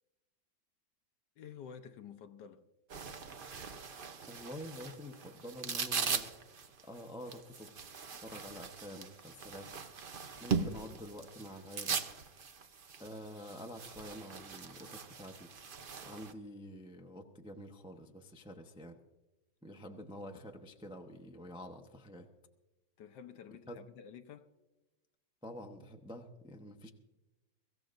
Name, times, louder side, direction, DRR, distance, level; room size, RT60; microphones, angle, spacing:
voice 1, 1.4-2.7 23.0-24.5, left 7 dB, 70° left, 1.3 m, -50 dB
Winter Sports Pants Foley, 2.9-16.3, right 5 dB, 60° right, 0.5 m, -40 dB
voice 2, 4.3-6.3 6.8-7.7 8.2-9.7 10.4-12.0 13.0-15.5 16.0-19.0 19.6-22.3 23.7-23.8 25.4-26.9, equal, 5° right, 0.4 m, -48 dB
24.0 x 14.5 x 2.6 m
omnidirectional pair, 2.1 m